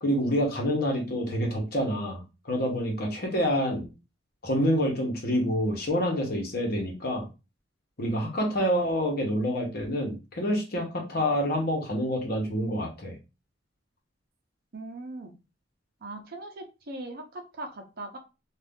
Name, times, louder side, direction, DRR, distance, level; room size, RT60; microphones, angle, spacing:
voice 1, 0.0-2.2 2.5-3.8 4.4-7.3 8.0-13.1, equal, 50° left, 0 dB, 1.0 m, -27 dB
voice 2, 14.7-15.3 16.0-18.2, right 2 dB, 50° right, 4 dB, 0.6 m, -40 dB
2.7 x 2.4 x 3.5 m, 0.28 s
head